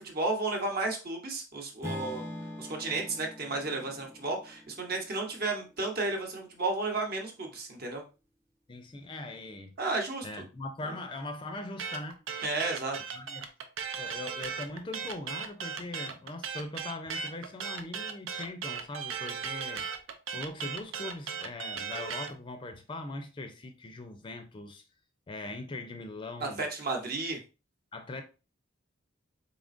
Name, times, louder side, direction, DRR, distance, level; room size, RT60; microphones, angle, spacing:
voice 1, 0.0-2.2 2.6-8.0 9.8-10.3 12.4-13.0 26.4-27.4, right 3 dB, 50° right, 0.9 m, -33 dB
Acoustic guitar / Strum, 1.8-6.0, left 1 dB, 15° right, 0.8 m, -43 dB
voice 2, 8.7-9.7 10.2-12.2 13.1-13.5 14.0-19.8 20.3-24.8 25.3-26.6 27.9-28.2, left 2 dB, 25° left, 0.4 m, -41 dB
sound 1, 11.8-22.3, right 6 dB, 80° right, 0.5 m, -37 dB
4.0 x 3.6 x 2.5 m
head